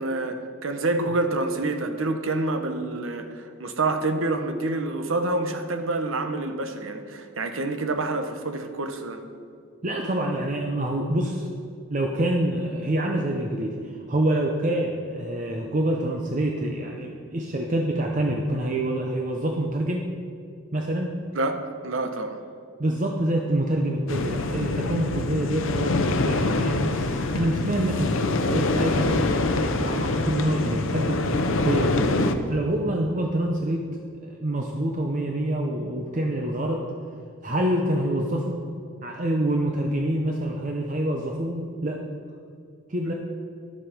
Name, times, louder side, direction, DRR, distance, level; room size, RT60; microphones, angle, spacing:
voice 1, 0.0-9.2 21.3-22.4, right 2 dB, 85° right, 7 dB, 0.9 m, -27 dB
voice 2, 9.8-11.5 11.9-20.1 20.7-21.2 22.8-29.3 29.6-32.1 32.5-36.8 37.4-38.6 39.0-42.0 42.9-43.1, right 1 dB, 40° right, 1 dB, 0.7 m, -26 dB
sound 1, 24.1-32.3, left 2 dB, 80° left, 0.7 m, -25 dB
11.0 x 7.3 x 5.1 m, 2.4 s
head